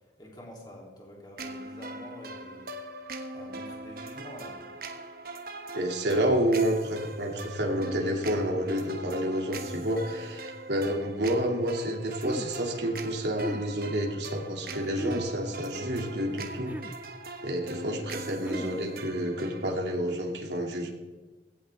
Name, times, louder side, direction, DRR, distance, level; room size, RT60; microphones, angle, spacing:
voice 1, 0.2-2.7 3.3-4.7 18.4-18.9, left 1 dB, 25° left, -2 dB, 3.1 m, -47 dB
sound 1, 1.4-19.7, right 2 dB, 55° right, 1.2 m, -41 dB
voice 2, 5.7-16.7 17.4-20.9, equal, 75° right, 1 dB, 2.6 m, -29 dB
sound 2, 11.8-12.5 13.2-13.7 14.8-15.3 16.3-17.0 18.1-18.8, equal, 10° right, 0.5 m, -36 dB
17.0 x 16.0 x 3.6 m, 1.3 s
head